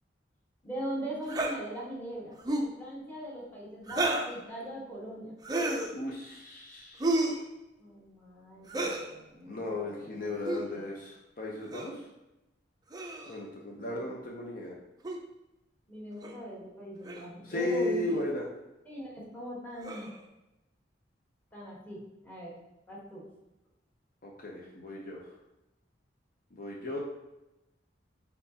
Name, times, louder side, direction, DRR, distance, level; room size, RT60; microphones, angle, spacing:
voice 1, 0.6-5.3 7.8-10.9 13.7-14.3 15.9-18.2 18.8-20.1 21.5-22.5 22.9-23.2, right 1 dB, 10° left, -6 dB, 1.2 m, -40 dB
sound 1, 1.3-1.5 2.4-2.7 3.9-4.3 5.4-5.9 7.0-7.4 8.7-9.1 10.4-10.6 11.7-11.9 12.9-13.4 15.0-15.2 16.2-16.3 17.0-17.3 18.1-18.2 19.8-20.2, right 2 dB, 20° right, 0.4 m, -31 dB
voice 2, 5.9-7.1 9.5-12.1 13.3-14.7 17.4-18.5 24.2-25.3 26.5-27.0, left 2 dB, 50° left, -2 dB, 0.6 m, -36 dB
4.3 x 3.9 x 2.7 m, 0.94 s
head